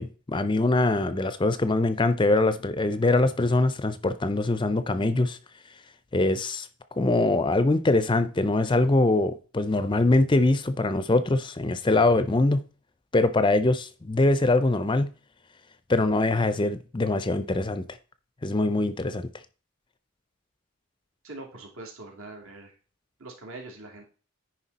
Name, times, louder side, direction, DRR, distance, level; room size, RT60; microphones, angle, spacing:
voice 1, 0.0-5.4 6.1-6.7 7.0-12.6 13.1-15.1 15.9-17.8 18.4-19.3, left 2 dB, 20° left, 0.5 m, -23 dB
voice 2, 21.2-22.7 23.2-24.0, right 2 dB, 70° right, 2.9 m, -42 dB
10.0 x 4.9 x 4.1 m
head